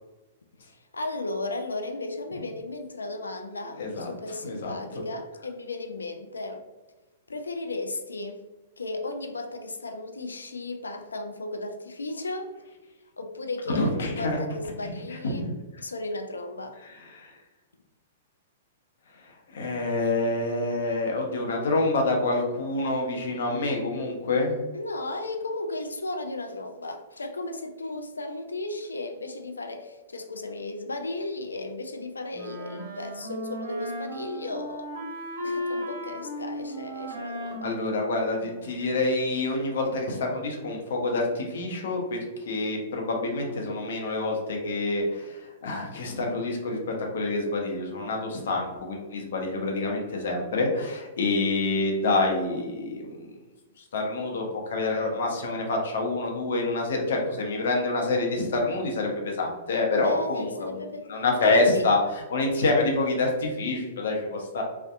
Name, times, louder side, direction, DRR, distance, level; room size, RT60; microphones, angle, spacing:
voice 1, 0.7-6.6 7.3-8.4 8.8-12.5 13.2-15.5 15.8-16.8 24.7-34.9 35.4-37.8 60.0-61.1 61.4-61.9, left 2 dB, 90° left, 5 dB, 0.3 m, -35 dB
voice 2, 3.8-4.1 4.4-5.0 13.7-14.4 14.8-14.9 15.2-15.5 17.1-17.3 19.5-24.6 37.6-42.2 42.5-53.3 53.8-60.7 61.1-62.0 62.3-64.6, left 2 dB, 70° left, 0 dB, 0.7 m, -27 dB
Wind instrument woodwind instrument, 32.3-38.9, equal, 60° right, 0.6 m, -36 dB
2.7 x 2.1 x 2.4 m, 1.2 s
hypercardioid pair, 115°, 0 cm